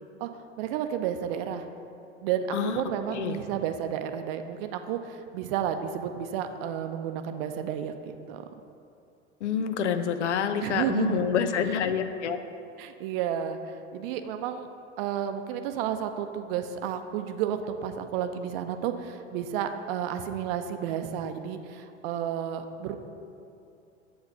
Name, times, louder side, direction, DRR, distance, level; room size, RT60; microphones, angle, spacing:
voice 1, 0.6-1.7 2.2-8.5 10.6-11.2 12.8-14.7 15.0-23.0, right 9 dB, 50° right, 8 dB, 0.6 m, -31 dB
voice 2, 9.4-12.4, left 7 dB, 70° left, 9 dB, 0.6 m, -27 dB
7.4 x 4.7 x 5.6 m, 2.6 s
figure-of-eight pair, 80°, 37 cm